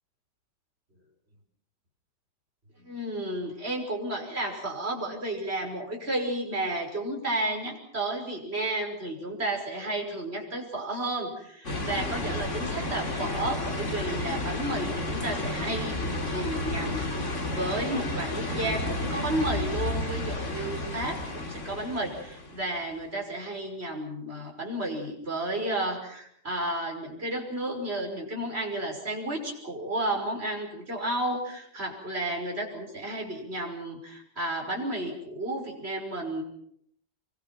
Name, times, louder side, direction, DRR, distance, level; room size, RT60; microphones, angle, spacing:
voice 1, 2.8-36.4, right 1 dB, 35° right, 1 dB, 6.2 m, -32 dB
sound 1, 11.6-22.9, left 2 dB, 40° left, 3.1 m, -32 dB
26.0 x 23.5 x 6.1 m, 0.68 s
omnidirectional pair, 1.9 m